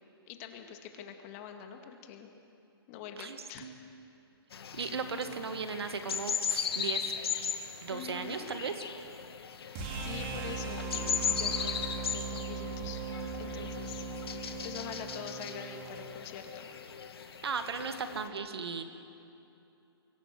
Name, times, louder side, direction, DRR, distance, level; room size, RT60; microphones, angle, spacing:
voice 1, 0.3-2.3 2.9-3.7 7.9-8.5 9.9-13.1 13.4-14.1 14.6-16.7, left 8 dB, 35° left, 5 dB, 2.0 m, -45 dB
voice 2, 3.2-3.7 4.7-7.1 7.8-8.7 17.4-18.8, right 5 dB, 80° right, 8 dB, 1.9 m, -36 dB
sound 1, 4.5-18.3, left 7 dB, 70° left, 2.0 m, -38 dB
sound 2, 9.8-15.9, right 4 dB, 30° right, 3.5 m, -39 dB
24.5 x 17.0 x 7.6 m, 2.8 s
hypercardioid pair, 150°, 13 cm